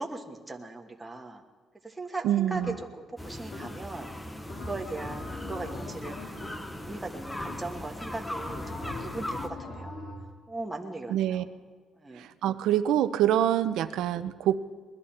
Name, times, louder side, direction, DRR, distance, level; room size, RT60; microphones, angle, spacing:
voice 1, 0.0-1.4 1.8-4.1 4.7-6.3 6.8-9.9 10.5-11.5 12.0-12.3, right 2 dB, 10° right, 1 dB, 1.4 m, -38 dB
voice 2, 2.2-2.7 11.1-11.4 12.4-14.6, right 11 dB, 85° right, 11 dB, 0.7 m, -25 dB
sound 1, 2.5-3.1 3.5-4.1 4.5-7.0 7.4-7.9 8.4-10.3, left 3 dB, 60° left, 4.0 m, -42 dB
sound 2, 3.2-9.5, left 1 dB, 10° left, 0.9 m, -39 dB
21.0 x 12.5 x 4.4 m, 1.5 s
cardioid pair, 120°, 0 cm